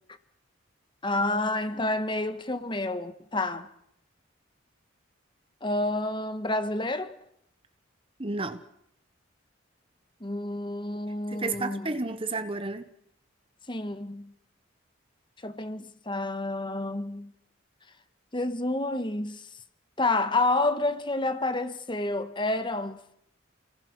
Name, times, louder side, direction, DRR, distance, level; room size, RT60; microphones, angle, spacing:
voice 1, 1.0-3.7 5.6-7.1 10.2-12.0 13.7-14.3 15.4-17.3 18.3-19.5 20.0-23.1, left 2 dB, 25° left, 1.4 m, -29 dB
voice 2, 8.2-8.6 11.3-12.9, right 3 dB, 25° right, 1.1 m, -31 dB
30.0 x 20.5 x 6.4 m
head